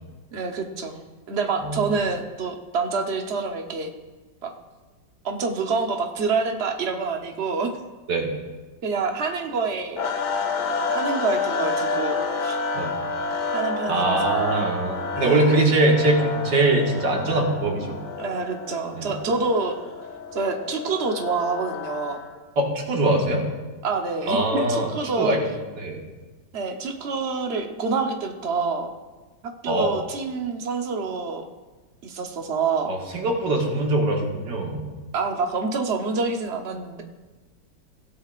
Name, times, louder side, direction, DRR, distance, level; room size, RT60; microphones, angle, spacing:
voice 1, 0.3-3.9 4.4-4.5 5.2-7.7 8.8-10.1 10.6-12.2 12.4-12.6 13.5-14.5 15.1-15.5 18.2-19.8 20.3-22.2 23.8-25.3 26.5-28.9 29.6-31.4 32.0-32.9 35.1-37.0, right 4 dB, 45° right, 3 dB, 1.1 m, -27 dB
sound 1, 10.0-22.3, left 4 dB, 70° left, 1.6 m, -29 dB
voice 2, 13.9-18.0 18.9-19.1 22.6-23.5 24.3-24.9 25.2-25.5 25.8-26.0 29.7-29.9 32.9-34.8, right 2 dB, 85° right, 0 dB, 2.4 m, -22 dB
16.5 x 11.0 x 2.5 m, 1.3 s
omnidirectional pair, 1.9 m